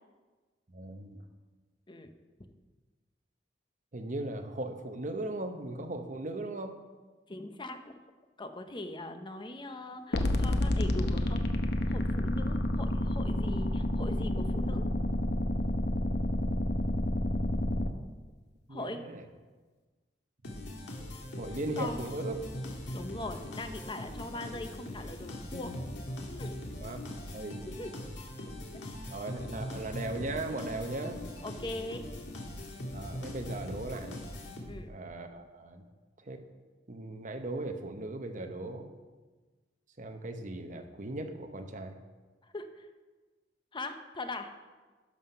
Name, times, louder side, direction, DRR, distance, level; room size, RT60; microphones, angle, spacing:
voice 1, 0.7-1.2 3.9-6.8 16.4-16.6 18.7-19.3 21.4-22.4 26.8-27.0 27.3-27.6 29.1-31.2 32.9-34.2 34.9-35.8 36.2-36.4 36.9-38.9 40.0-42.0, right 2 dB, 45° right, 6 dB, 0.9 m, -38 dB
voice 2, 7.3-7.9 8.4-11.4 11.9-14.9 18.7-19.0 21.8-22.0 22.9-25.8 26.4-26.6 27.7-27.9 31.4-32.1 34.7-34.9 42.4-42.9 43.7-44.5, left 2 dB, 25° left, 8 dB, 0.7 m, -40 dB
sound 1, 10.1-17.9, left 1 dB, 65° left, 0.8 m, -29 dB
sound 2, 20.4-35.0, left 1 dB, 85° left, 1.7 m, -41 dB
11.5 x 5.7 x 5.6 m, 1.3 s
head